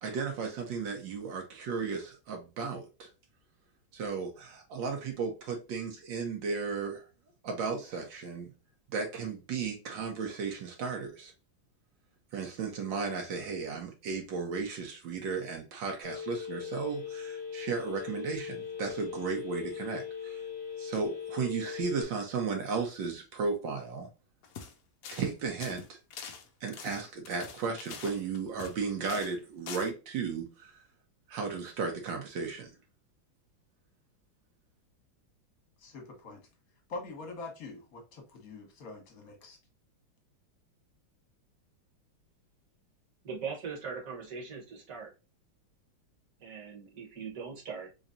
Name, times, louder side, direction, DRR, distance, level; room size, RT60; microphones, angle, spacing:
voice 1, 0.0-3.1 3.9-7.0 7.4-8.5 8.9-11.3 12.3-20.4 20.8-24.1 25.1-26.0 26.6-30.8 31.3-32.7, right 5 dB, 70° right, 1.5 m, -35 dB
Telephone, 16.0-22.0, left 7 dB, 20° left, 0.5 m, -40 dB
sound 1, 24.4-24.7 25.0-25.3 25.6-28.8 29.1-29.4 29.7-29.9, left 6 dB, 70° left, 0.8 m, -44 dB
voice 2, 35.8-36.5 36.9-39.6, left 3 dB, 50° left, 1.5 m, -44 dB
voice 3, 43.2-45.1 46.4-47.9, right 5 dB, 50° right, 1.4 m, -40 dB
3.9 x 3.1 x 2.5 m
omnidirectional pair, 2.2 m